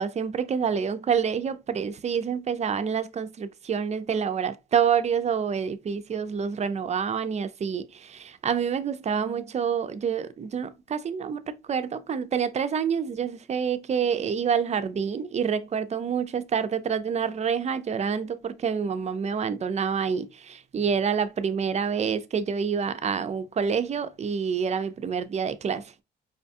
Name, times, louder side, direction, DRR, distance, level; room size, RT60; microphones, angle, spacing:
voice 1, 0.0-26.0, right 7 dB, 35° right, 0.4 m, -27 dB
4.8 x 2.3 x 2.6 m
cardioid pair, 90°, 20 cm